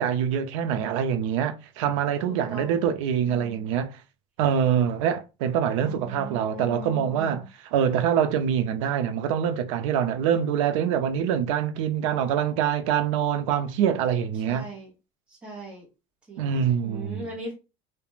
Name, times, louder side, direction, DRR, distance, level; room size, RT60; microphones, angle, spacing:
voice 1, 0.0-4.0 4.4-7.4 7.7-14.7 16.4-17.3, right 8 dB, 85° right, 0.5 m, -25 dB
voice 2, 2.3-2.8 3.2-3.7 5.8-7.5 14.4-14.9 15.3-15.9 16.3-17.5, right 1 dB, 5° right, 0.8 m, -40 dB
2.3 x 2.1 x 3.1 m
cardioid pair, 165°, 16 cm